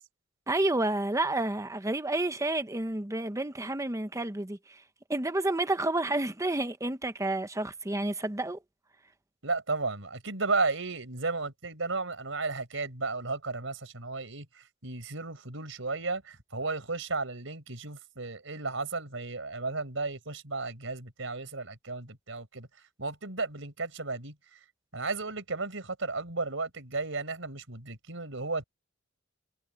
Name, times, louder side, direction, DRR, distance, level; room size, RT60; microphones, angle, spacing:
voice 1, 0.5-4.8 5.1-8.6, right 2 dB, 15° right, 1.0 m, -30 dB
voice 2, 9.4-14.5 14.8-22.7 23.0-24.3 24.9-28.6, right 3 dB, 75° right, 5.3 m, -34 dB
head